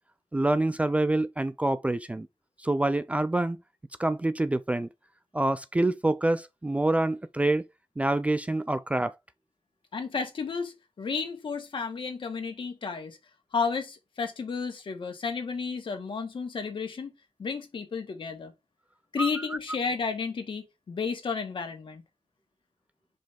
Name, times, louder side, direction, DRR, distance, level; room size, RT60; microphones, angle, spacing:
voice 1, 0.3-2.3 2.6-3.6 4.0-4.9 5.3-7.7 8.0-9.1 19.2-19.3, right 2 dB, 15° right, 0.3 m, -26 dB
voice 2, 9.9-13.2 13.5-17.1 17.4-18.5 19.1-22.0, left 5 dB, 65° left, 1.6 m, -32 dB
5.2 x 3.4 x 5.7 m
wide cardioid pair, 165°, 9 cm